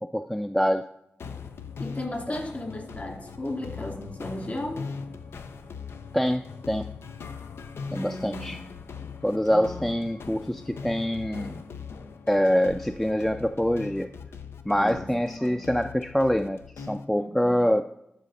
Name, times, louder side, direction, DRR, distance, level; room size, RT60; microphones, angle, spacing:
voice 1, 0.0-0.8 6.1-6.9 7.9-8.6 9.2-11.6 12.3-14.1 14.7-17.8, equal, 5° left, 8 dB, 0.4 m, -25 dB
sound 1, 1.2-17.1, left 5 dB, 90° left, 0.5 m, -40 dB
voice 2, 1.8-4.9 7.9-8.5 9.5-9.9 14.7-15.6 17.1-17.7, left 1 dB, 40° left, 0 dB, 2.7 m, -35 dB
11.5 x 4.0 x 4.2 m, 0.82 s
cardioid pair, 40°, 4 cm